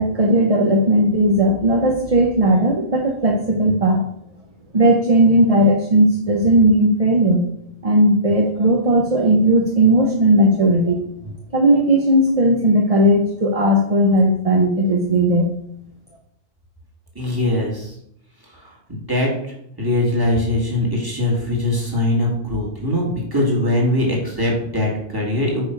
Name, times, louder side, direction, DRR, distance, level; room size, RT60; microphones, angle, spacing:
voice 1, 0.0-4.0 4.7-7.4 7.8-11.0 11.5-15.5, right 1 dB, 35° right, 2 dB, 0.9 m, -16 dB
voice 2, 17.1-17.9 18.5-25.7, left 1 dB, 20° right, -3 dB, 2.3 m, -21 dB
8.9 x 5.4 x 4.7 m, 0.74 s
omnidirectional pair, 1.2 m